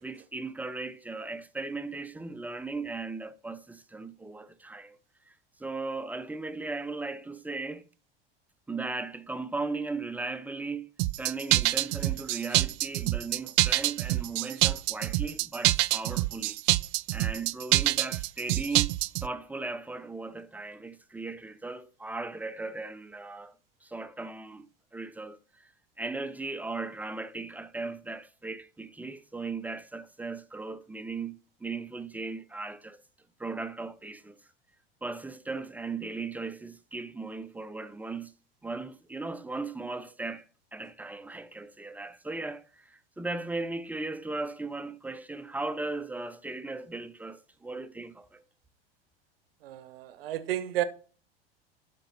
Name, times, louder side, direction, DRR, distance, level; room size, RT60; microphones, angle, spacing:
voice 1, 0.0-5.0 5.3-5.4 5.6-7.8 8.7-10.9 11.2-16.6 17.1-23.5 23.8-24.7 24.9-25.7 26.0-33.0 33.4-34.4 35.0-38.3 38.6-40.5 40.7-48.4, right 3 dB, 5° right, 0.7 m, -37 dB
sound 1, 11.0-19.3, right 21 dB, 50° right, 0.4 m, -26 dB
voice 2, 49.6-50.8, right 13 dB, 70° right, 0.9 m, -32 dB
12.0 x 5.3 x 4.1 m
hypercardioid pair, 85°, 30 cm